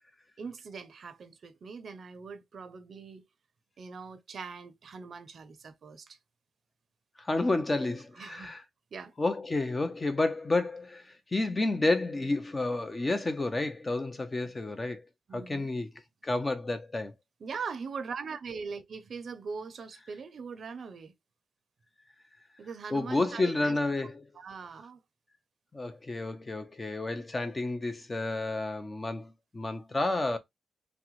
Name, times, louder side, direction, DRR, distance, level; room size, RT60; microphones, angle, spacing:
voice 1, 0.4-3.2 3.8-6.2 8.1-8.6 8.9-9.1 15.3-15.7 17.4-21.1 22.6-23.8 24.4-25.0, right 5 dB, 65° right, 0.5 m, -41 dB
voice 2, 7.2-8.6 9.2-15.0 15.3-15.9 16.2-17.1 22.9-24.3 25.7-30.4, left 2 dB, 30° left, 0.6 m, -30 dB
3.4 x 2.1 x 3.0 m
cardioid pair, 70°, 0 cm